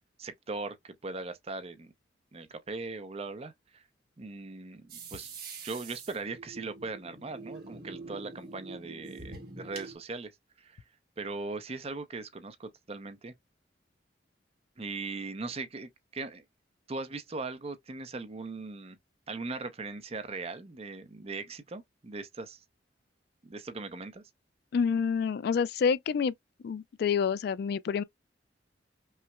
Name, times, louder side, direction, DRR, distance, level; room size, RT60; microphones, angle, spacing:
voice 1, 0.2-1.9 2.3-3.8 4.2-5.3 5.6-10.3 10.6-10.8 11.2-13.3 14.8-16.4 16.9-19.0 19.3-22.6 23.4-24.2, right 3 dB, 35° right, 0.6 m, -39 dB
sound 1, 4.9-10.0, right 4 dB, 60° right, 1.5 m, -45 dB
voice 2, 24.7-26.3 26.6-28.0, left 6 dB, 60° left, 0.3 m, -28 dB
5.6 x 2.0 x 2.2 m
head